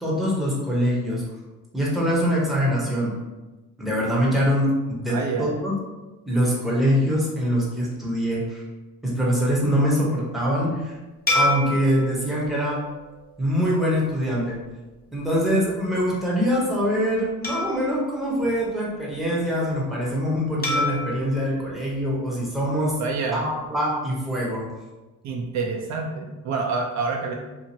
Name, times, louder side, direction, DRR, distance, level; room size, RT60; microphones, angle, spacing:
voice 1, 0.0-1.2 1.7-3.2 3.8-5.7 6.3-8.6 9.0-11.0 11.3-12.8 13.4-14.6 15.1-23.0 23.3-24.7, equal, ahead, -5 dB, 0.9 m, -24 dB
voice 2, 5.1-5.5 23.0-23.5 25.2-27.3, right 4 dB, 55° right, 1 dB, 0.4 m, -27 dB
sound 1, 11.3-13.9 14.5-14.7 17.4-19.2 20.6-22.9, left 2 dB, 30° left, 1.0 m, -30 dB
2.8 x 2.5 x 2.7 m, 1.1 s
cardioid pair, 100°, 33 cm